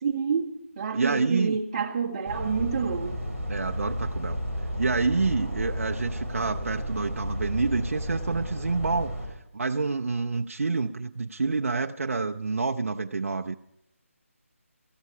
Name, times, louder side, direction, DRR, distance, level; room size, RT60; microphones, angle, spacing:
voice 1, 0.0-3.2, right 6 dB, 20° right, 1.6 m, -28 dB
voice 2, 0.9-1.6 3.5-4.4 4.8-9.1 9.5-13.6, right 4 dB, 65° right, 0.6 m, -28 dB
sound 1, 2.2-9.3, equal, 10° left, 4.2 m, -32 dB
18.0 x 14.0 x 4.8 m
figure-of-eight pair, 175°, 8 cm